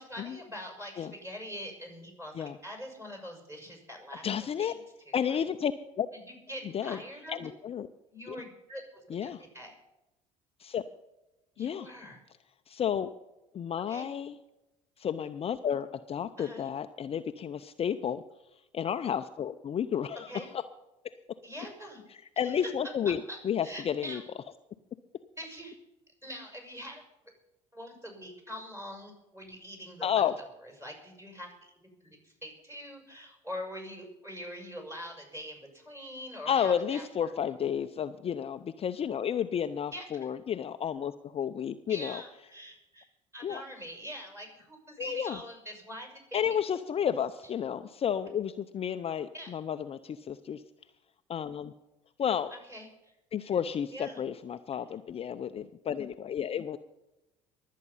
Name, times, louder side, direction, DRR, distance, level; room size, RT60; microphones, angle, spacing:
voice 1, 0.0-4.8 5.0-5.4 6.1-7.5 8.1-8.8 9.1-9.7 11.5-12.2 13.9-14.0 16.4-16.7 20.3-20.5 21.4-22.0 22.4-22.7 23.3-23.4 23.6-24.2 25.4-25.8 26.2-27.0 27.7-30.5 30.8-37.3 39.9-40.0 41.9-43.1 43.3-46.5 49.3-49.5 52.5-53.1 53.9-54.2, equal, 15° right, 3 dB, 6.5 m, -44 dB
voice 2, 4.2-4.7 5.1-5.7 6.0-6.1 6.7-7.0 7.3-7.9 8.3-8.4 9.1-9.4 10.6-10.9 11.6-11.9 12.7-13.1 13.5-14.4 15.0-18.2 18.7-20.3 21.0-21.1 22.4-24.2 30.0-30.3 36.5-42.2 43.4-43.6 45.0-45.4 46.3-50.6 51.3-51.7 52.2-52.5 53.3-56.8, left 8 dB, 35° left, 10 dB, 0.6 m, -31 dB
23.0 x 8.5 x 5.6 m, 0.97 s
hypercardioid pair, 65°, 17 cm